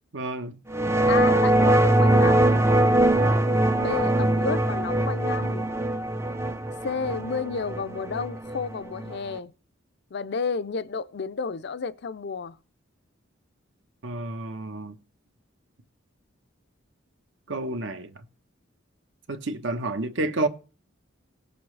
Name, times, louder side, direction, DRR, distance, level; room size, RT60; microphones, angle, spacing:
voice 1, 0.1-0.6 14.0-15.0 17.5-18.1 19.3-20.5, right 2 dB, 65° right, 1.0 m, -30 dB
sound 1, 0.7-9.4, right 1 dB, 15° right, 0.5 m, -22 dB
voice 2, 1.1-2.6 3.8-5.7 6.8-9.5 10.1-12.6, left 5 dB, 55° left, 0.5 m, -31 dB
18.5 x 6.9 x 3.3 m
head